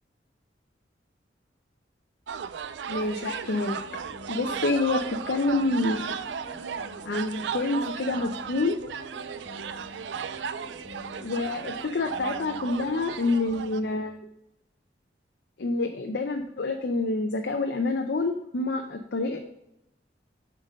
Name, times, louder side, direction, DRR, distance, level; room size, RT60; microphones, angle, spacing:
sound 1, 2.3-13.8, right 7 dB, 75° right, 0.4 m, -35 dB
voice 1, 2.9-3.8 4.3-6.0 7.0-8.8 11.2-14.2 15.6-19.4, left 2 dB, 65° left, 4 dB, 0.6 m, -27 dB
sound 2, 3.5-14.1, left 2 dB, 10° left, 1.5 m, -48 dB
7.5 x 3.9 x 5.2 m, 0.83 s
head